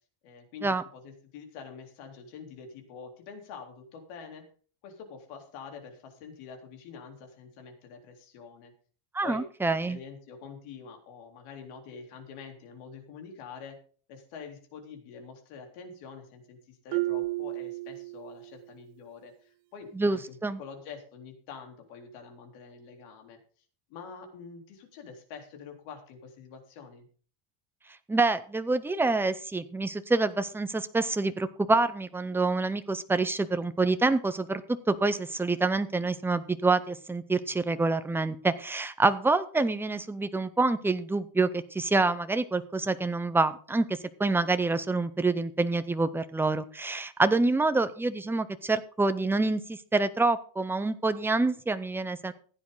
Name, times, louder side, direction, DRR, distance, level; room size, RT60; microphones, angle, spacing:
voice 1, 0.2-4.4 4.8-8.7 9.2-9.4 9.9-13.8 14.1-23.4 23.9-27.1, left 6 dB, 75° left, 4 dB, 3.7 m, -46 dB
voice 2, 9.1-10.0 19.9-20.6 28.1-34.6 34.9-52.3, right 3 dB, 5° right, 11 dB, 0.5 m, -27 dB
Marimba xylophone, 16.9-18.7, right 20 dB, 60° right, 0.7 m, -32 dB
15.5 x 9.6 x 3.9 m, 0.42 s
cardioid pair, 145°, 50 cm